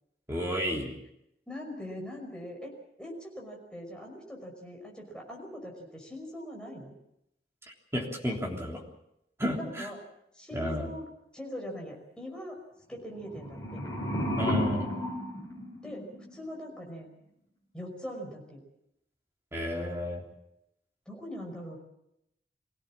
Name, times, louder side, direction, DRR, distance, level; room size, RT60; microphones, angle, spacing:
voice 1, 0.3-0.9 7.9-8.8 9.4-9.9 10.5-10.9 14.4-14.9 19.5-20.2, equal, 15° right, -1 dB, 3.5 m, -32 dB
voice 2, 1.5-2.7 3.0-6.9 9.5-10.0 10.3-12.6 12.9-13.8 15.8-17.1 17.7-18.6 21.1-21.8, equal, 5° left, -1 dB, 5.5 m, -41 dB
sound 1, 13.2-16.3, left 1 dB, 20° left, 5.6 m, -32 dB
23.5 x 17.0 x 7.5 m, 0.80 s
head